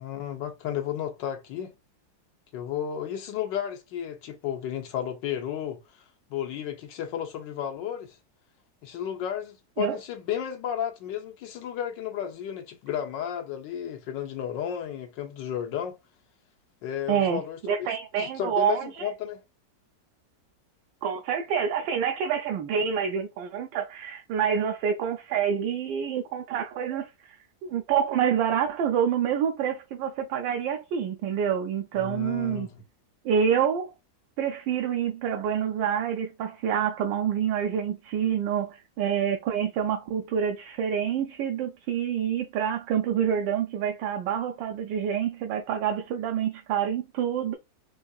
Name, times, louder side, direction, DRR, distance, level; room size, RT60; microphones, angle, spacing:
voice 1, 0.0-1.7 2.5-6.0 6.3-8.2 8.8-16.0 16.8-17.9 18.2-19.4 32.0-32.8, left 9 dB, 85° left, 1.5 m, -33 dB
voice 2, 17.1-19.1 21.0-27.4 27.6-32.7 33.2-33.9 34.4-47.6, right 8 dB, 85° right, 1.3 m, -27 dB
4.7 x 2.7 x 2.3 m
omnidirectional pair, 1.9 m